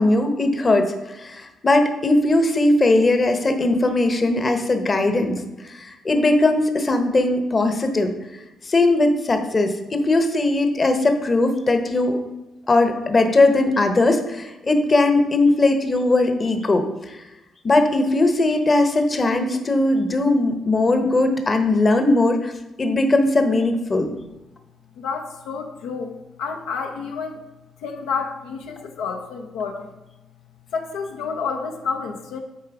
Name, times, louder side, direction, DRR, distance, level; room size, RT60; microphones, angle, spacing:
voice 1, 0.0-8.1 8.6-12.2 12.7-17.2 17.6-22.5 22.8-24.1, left 2 dB, 35° left, 6 dB, 0.9 m, -19 dB
voice 2, 25.0-27.4 27.8-30.0 30.7-32.4, left 5 dB, 85° left, 3 dB, 0.7 m, -30 dB
8.5 x 3.3 x 4.8 m, 1.0 s
supercardioid pair, 70°, 0 cm